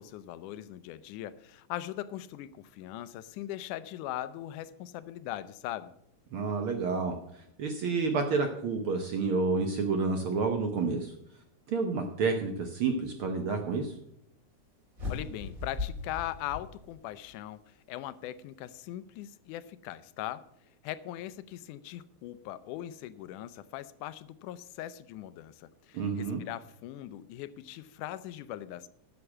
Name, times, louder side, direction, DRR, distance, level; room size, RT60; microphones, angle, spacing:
voice 1, 0.0-5.9 15.1-20.4 20.8-28.9, left 13 dB, 85° left, 15 dB, 2.2 m, -40 dB
voice 2, 6.3-11.1 11.7-13.9 25.9-26.4, right 4 dB, 65° right, 5 dB, 1.4 m, -30 dB
sound 1, 14.9-17.3, left 4 dB, 25° right, 3.3 m, -38 dB
11.0 x 6.9 x 7.2 m, 0.75 s
omnidirectional pair, 3.5 m